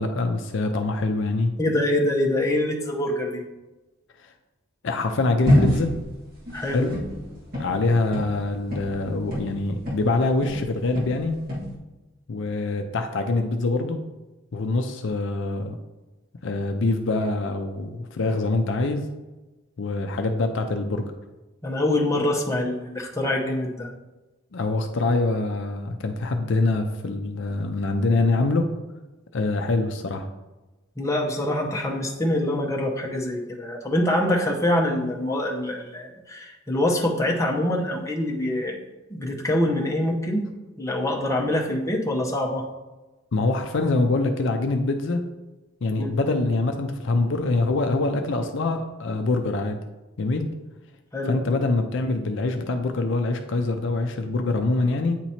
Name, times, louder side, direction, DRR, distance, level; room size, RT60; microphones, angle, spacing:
voice 1, 0.0-1.6 4.2-4.3 4.8-5.9 6.7-7.0 7.6-11.4 12.3-14.0 14.5-15.8 16.4-19.1 19.8-21.0 24.5-28.7 29.3-30.3 43.3-45.2 45.8-49.8 50.2-50.5 51.3-55.2, left 2 dB, 60° left, 5 dB, 0.5 m, -24 dB
voice 2, 1.6-3.4 6.5-6.9 21.6-23.9 31.0-38.8 39.1-40.4 40.8-42.6 46.0-46.2 51.1-51.3, left 1 dB, 15° left, -1 dB, 0.8 m, -25 dB
swinging lid, 5.5-10.2 10.4-11.7, left 1 dB, 50° right, 1.8 m, -25 dB
8.9 x 3.0 x 4.2 m, 1.1 s
head